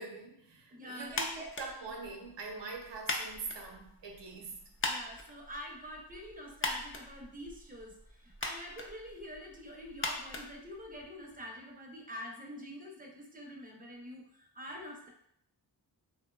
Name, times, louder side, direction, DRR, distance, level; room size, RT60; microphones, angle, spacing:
voice 1, 0.0-4.7, right 3 dB, 80° right, 1 dB, 0.6 m, -43 dB
voice 2, 0.7-1.5 4.9-15.1, equal, 20° right, 0 dB, 0.5 m, -46 dB
sound 1, 1.1-11.3, left 2 dB, 30° left, 0.4 m, -41 dB
2.7 x 2.1 x 2.2 m, 0.73 s
cardioid pair, 55°, 42 cm